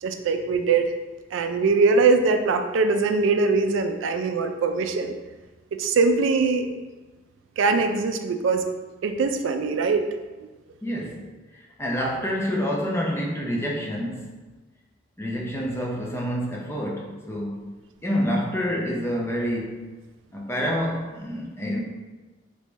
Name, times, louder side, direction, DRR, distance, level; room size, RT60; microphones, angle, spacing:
voice 1, 0.0-0.9 1.3-5.1 5.7-6.7 7.6-8.6 9.0-10.1, right 4 dB, 85° right, 7 dB, 0.3 m, -22 dB
voice 2, 10.8-11.3 11.8-14.3 15.2-17.7 18.0-19.8 20.3-21.8, equal, 15° left, -1 dB, 0.4 m, -27 dB
3.3 x 2.6 x 3.0 m, 1.2 s
head